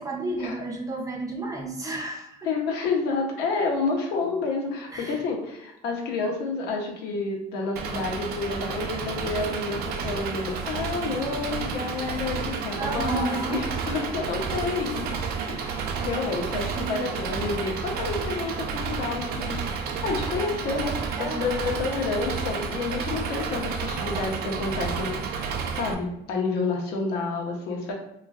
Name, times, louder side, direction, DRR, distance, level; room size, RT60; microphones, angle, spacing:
voice 1, 0.0-2.5 4.9-5.3 12.8-13.7 16.7-17.2 21.2-21.4, right 2 dB, 20° right, 1 dB, 0.6 m, -32 dB
voice 2, 2.4-25.1 25.7-27.9, left 4 dB, 85° left, 0 dB, 0.7 m, -29 dB
Engine, 7.8-25.9, right 5 dB, 65° right, 0.4 m, -31 dB
3.1 x 2.4 x 2.4 m, 0.81 s
cardioid pair, 110°, 17 cm